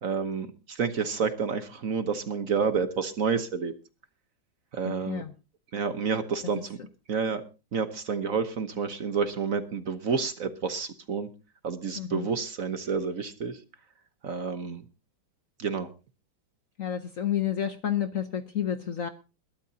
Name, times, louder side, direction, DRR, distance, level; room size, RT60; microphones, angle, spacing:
voice 1, 0.0-3.7 4.7-5.2 5.7-6.8 7.1-7.4 7.7-11.3 11.6-13.6 14.2-14.8 15.6-15.9, right 5 dB, 50° right, 10 dB, 1.2 m, -29 dB
voice 2, 4.8-5.3 6.5-6.6 12.0-12.3 16.8-19.1, left 9 dB, 55° left, 10 dB, 1.0 m, -30 dB
21.5 x 12.5 x 2.8 m, 0.31 s
omnidirectional pair, 2.1 m